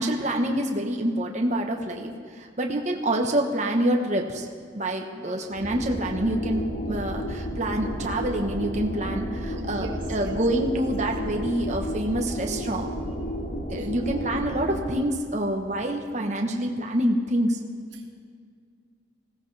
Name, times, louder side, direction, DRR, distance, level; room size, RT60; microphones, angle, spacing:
voice 1, 0.0-4.5 4.7-12.9 13.7-17.6, right 1 dB, 40° right, 2 dB, 1.1 m, -27 dB
voice 2, 5.1-5.5 9.5-10.4 13.8-14.2 17.9-18.1, right 1 dB, 85° right, 1 dB, 1.8 m, -41 dB
sound 1, 5.5-14.9, equal, 45° left, 1.6 m, -32 dB
20.0 x 16.0 x 3.4 m, 2.1 s
head